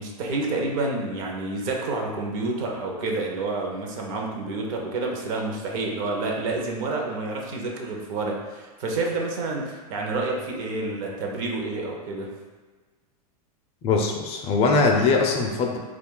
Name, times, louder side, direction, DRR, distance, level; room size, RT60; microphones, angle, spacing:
voice 1, 0.0-12.3, right 2 dB, 60° right, 0 dB, 0.7 m, -29 dB
voice 2, 13.8-15.8, left 4 dB, 30° left, 1 dB, 0.4 m, -21 dB
2.3 x 2.3 x 3.7 m, 1.4 s
hypercardioid pair, 120°, 20 cm